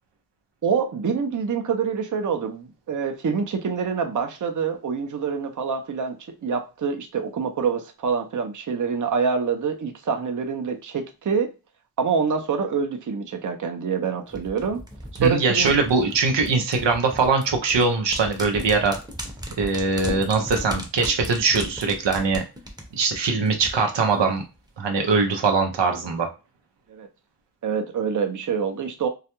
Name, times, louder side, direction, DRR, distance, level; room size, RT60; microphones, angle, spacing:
voice 1, 0.6-11.5 12.0-14.8 15.2-15.8 26.9-27.1 27.6-29.1, right 6 dB, 50° right, 5 dB, 0.5 m, -26 dB
sound 1, 14.3-23.7 24.0-24.1, equal, 10° right, 0.7 m, -35 dB
voice 2, 15.2-19.0 19.6-22.4 22.9-24.4 24.8-26.3, right 4 dB, 90° right, 3 dB, 0.6 m, -22 dB
2.3 x 2.1 x 2.9 m, 0.29 s
wide cardioid pair, 50°, 42 cm